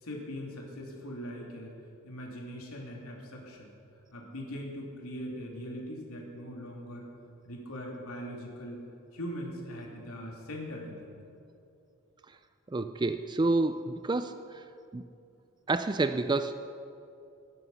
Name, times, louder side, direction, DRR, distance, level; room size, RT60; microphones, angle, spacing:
voice 1, 0.0-1.7 2.0-3.7 4.1-7.1 7.4-8.8 9.1-11.1, equal, 80° left, -1 dB, 3.0 m, -41 dB
voice 2, 12.7-14.4 14.9-15.0 15.7-16.5, right 3 dB, 20° right, 10 dB, 0.3 m, -28 dB
19.5 x 10.5 x 5.6 m, 2.6 s
head